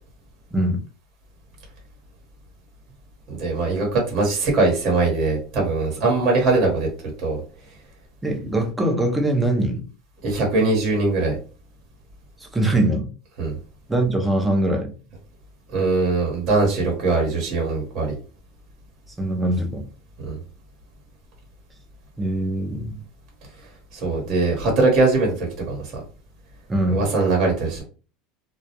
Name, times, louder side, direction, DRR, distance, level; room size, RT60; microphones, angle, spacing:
voice 1, 3.3-6.9 7.2-7.4 10.2-11.4 13.4-13.5 15.7-18.1 20.3-20.4 23.9-25.9 26.9-27.8, right 3 dB, 45° right, -1 dB, 1.0 m, -21 dB
voice 2, 8.2-9.8 12.4-13.1 13.9-14.9 19.2-19.9 22.2-23.0 26.7-27.0, right 1 dB, 10° right, 2 dB, 0.6 m, -22 dB
2.3 x 2.0 x 2.8 m, 0.37 s
supercardioid pair, 130°, 0 cm